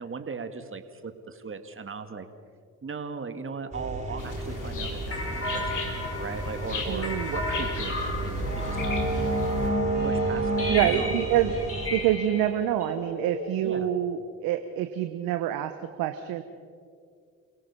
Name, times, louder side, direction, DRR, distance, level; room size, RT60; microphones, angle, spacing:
voice 1, 0.0-2.3 2.8-8.9 10.0-11.1 13.6-13.9, right 5 dB, 35° right, 8 dB, 2.1 m, -38 dB
sound 1, 3.7-11.9, right 3 dB, 20° right, 5.8 m, -35 dB
sound 2, 4.2-9.7, left 4 dB, 60° left, 3.6 m, -36 dB
sound 3, 5.1-14.0, equal, 40° left, 5.9 m, -31 dB
voice 2, 6.9-7.3 10.7-11.5 11.9-15.7 16.0-16.4, right 12 dB, 80° right, 8 dB, 1.1 m, -26 dB
28.5 x 17.5 x 5.6 m, 2.2 s
supercardioid pair, 55°, 35 cm